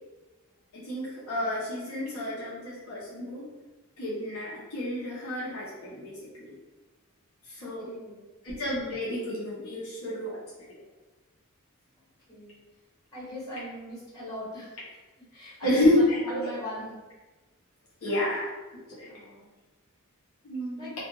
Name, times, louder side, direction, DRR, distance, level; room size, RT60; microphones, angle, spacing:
voice 1, 0.7-3.4 4.0-6.5 7.5-7.9 8.4-10.4 15.6-16.4 18.0-18.5 19.0-19.1 20.4-20.9, left 1 dB, 70° left, -8 dB, 0.8 m, -29 dB
voice 2, 7.6-8.3 12.3-12.6 13.1-14.7 15.3-17.0 19.0-19.5 20.8-20.9, equal, 15° left, -11 dB, 1.5 m, -40 dB
2.4 x 2.3 x 3.0 m, 1.2 s
head